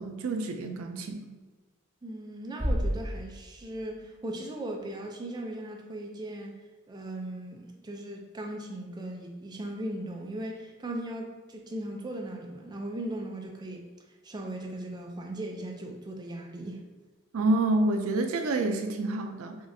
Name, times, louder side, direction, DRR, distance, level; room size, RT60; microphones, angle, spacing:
voice 1, 0.0-1.3 17.3-19.6, right 2 dB, 85° right, 5 dB, 0.4 m, -28 dB
voice 2, 2.0-6.5 6.9-13.9 14.2-16.8, right 1 dB, 20° right, 1 dB, 0.4 m, -38 dB
sound 1, 2.6-4.5, equal, 40° right, 1.5 m, -32 dB
4.9 x 2.4 x 2.6 m, 1.3 s
head